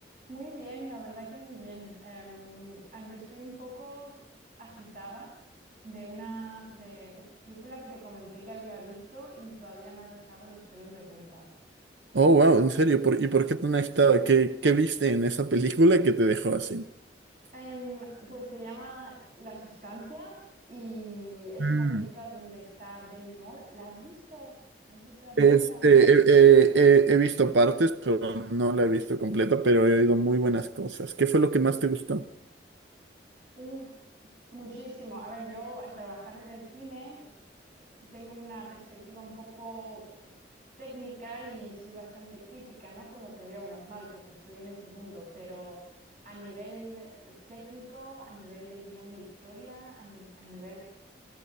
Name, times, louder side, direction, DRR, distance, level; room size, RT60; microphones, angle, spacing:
voice 1, 0.3-4.1 4.6-11.5 17.5-20.4 20.7-24.5 24.8-25.9 33.6-33.9 34.5-37.3 38.1-40.3 40.8-50.8, right 1 dB, 45° right, 6.8 m, -44 dB
voice 2, 12.1-16.8 21.6-22.0 25.4-32.2, right 4 dB, 85° right, 0.7 m, -21 dB
29.5 x 16.0 x 5.4 m
head